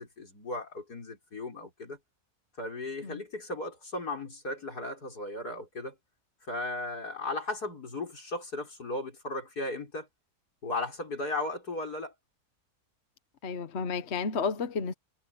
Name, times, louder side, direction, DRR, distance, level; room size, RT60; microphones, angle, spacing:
voice 1, 0.0-2.0 2.6-5.9 6.5-10.1 10.6-12.1, left 2 dB, 85° left, 6.0 m, -36 dB
voice 2, 13.4-14.9, left 5 dB, 50° left, 1.3 m, -32 dB
omnidirectional pair, 1.6 m